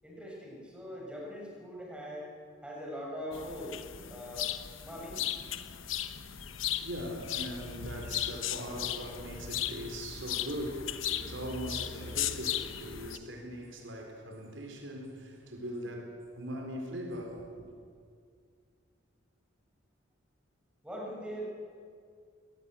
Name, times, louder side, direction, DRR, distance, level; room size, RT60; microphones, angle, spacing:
voice 1, 0.0-2.3 2.6-4.5 4.8-5.2 20.8-21.4, equal, 5° right, 6.2 m, -41 dB
sound 1, 3.3-13.2, left 11 dB, 90° left, 1.0 m, -37 dB
voice 2, 6.7-17.7, equal, 75° right, 4.3 m, -40 dB
22.0 x 18.0 x 8.6 m
head